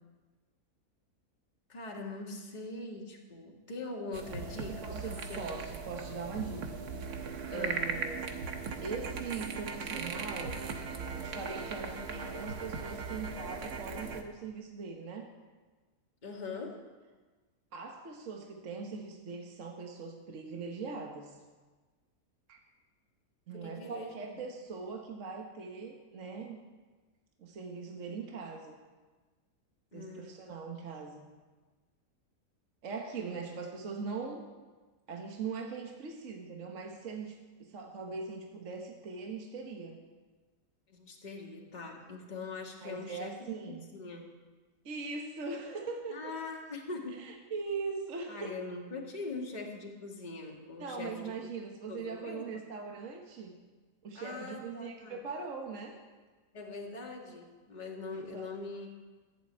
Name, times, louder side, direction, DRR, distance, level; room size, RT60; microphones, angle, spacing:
voice 1, 1.7-5.6 7.5-7.9 16.2-16.8 23.5-24.4 29.9-30.4 40.9-44.2 46.1-47.2 48.3-51.2 51.9-52.6 54.1-55.2 56.5-58.9, left 3 dB, 30° left, -1 dB, 1.9 m, -42 dB
sound 1, 4.1-14.2, right 5 dB, 80° right, 1.7 m, -39 dB
voice 2, 4.8-6.8 7.5-8.4 8.8-10.6 11.2-15.3 17.7-21.4 22.5-22.6 23.5-26.6 27.4-28.8 29.9-31.3 32.8-34.5 35.1-40.0 42.8-43.9 44.8-46.3 47.2-48.6 50.8-53.5 54.0-56.0 58.1-58.7, right 4 dB, 55° right, 2 dB, 1.5 m, -41 dB
15.0 x 7.8 x 8.7 m, 1.3 s
omnidirectional pair, 1.6 m